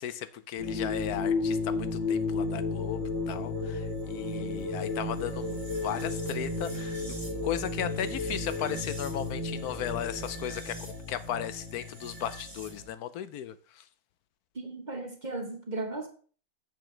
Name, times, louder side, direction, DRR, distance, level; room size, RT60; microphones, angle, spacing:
voice 1, 0.0-6.9 7.4-13.8, left 10 dB, 80° left, 1.1 m, -36 dB
sound 1, 0.6-12.9, left 3 dB, 15° right, 3.0 m, -33 dB
voice 2, 14.5-16.1, right 2 dB, 30° right, 1.1 m, -36 dB
8.0 x 7.0 x 3.3 m
omnidirectional pair, 1.6 m